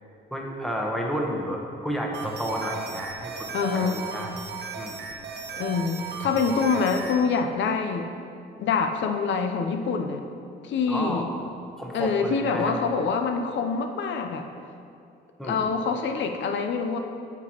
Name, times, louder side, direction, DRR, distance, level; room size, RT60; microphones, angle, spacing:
voice 1, 0.3-4.3 4.7-5.1 10.9-11.4 11.8-12.8 15.4-15.6, equal, ahead, -1 dB, 1.0 m, -31 dB
sound 1, 2.1-7.2, right 5 dB, 60° right, 0.8 m, -36 dB
voice 2, 3.5-4.0 5.6-8.1 8.6-10.2 10.6-11.3 11.9-14.5 15.4-17.0, left 5 dB, 70° left, 6 dB, 0.6 m, -25 dB
8.9 x 5.9 x 2.9 m, 2.5 s
cardioid pair, 90°, 20 cm